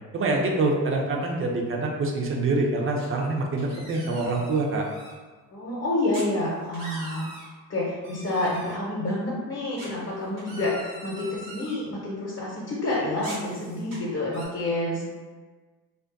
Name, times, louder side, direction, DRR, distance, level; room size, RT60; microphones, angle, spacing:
voice 1, 0.1-4.9, right 2 dB, 25° right, 0 dB, 0.5 m, -25 dB
sound 1, 3.0-3.3 3.6-5.1 6.1-6.3 6.6-7.5 8.0-8.7 9.8-11.7 13.2-14.0 14.3-14.5, right 1 dB, 90° right, 0.8 m, -42 dB
voice 2, 5.5-7.3 7.7-15.1, left 1 dB, 30° left, -5 dB, 0.8 m, -28 dB
2.4 x 2.3 x 2.5 m, 1.4 s
hypercardioid pair, 45°, 49 cm